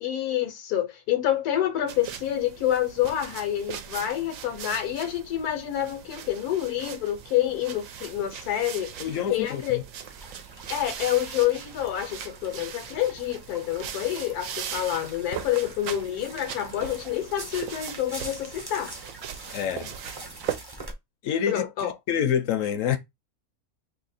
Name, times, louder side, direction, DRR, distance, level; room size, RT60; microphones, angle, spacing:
voice 1, 0.0-9.0 9.3-9.8 10.7-19.0 21.5-21.9, left 12 dB, 85° left, 1.2 m, -28 dB
sound 1, 1.9-20.6, right 9 dB, 70° right, 0.9 m, -39 dB
voice 2, 9.0-9.8 19.5-20.0 21.2-23.0, left 8 dB, 65° left, 0.9 m, -27 dB
sound 2, 10.0-20.9, right 2 dB, 20° right, 0.7 m, -45 dB
2.8 x 2.8 x 4.0 m
omnidirectional pair, 1.6 m